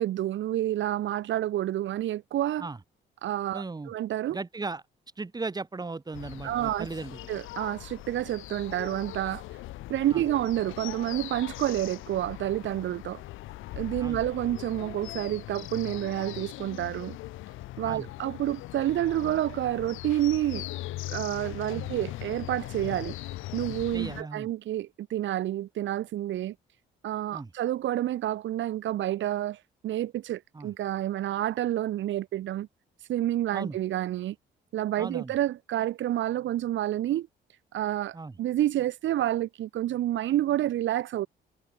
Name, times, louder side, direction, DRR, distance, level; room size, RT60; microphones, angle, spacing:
voice 1, 0.0-2.7 3.2-4.4 6.4-6.9 7.3-9.4 9.9-13.2 13.7-17.2 17.8-20.7 21.1-23.2 23.5-26.5 27.0-32.7 33.1-34.3 34.7-37.3 37.7-41.3, right 13 dB, 70° right, 0.9 m, -29 dB
voice 2, 3.5-3.9 4.3-4.8 5.2-7.2 10.1-10.2 14.0-14.2 17.8-18.1 21.7-21.9 23.9-24.5 27.3-27.5 30.5-30.7 33.5-33.8 35.0-35.3 38.1-38.3, right 3 dB, 20° right, 1.6 m, -37 dB
sound 1, 6.1-24.2, left 16 dB, 85° left, 0.8 m, -40 dB
cardioid pair, 90°, 20 cm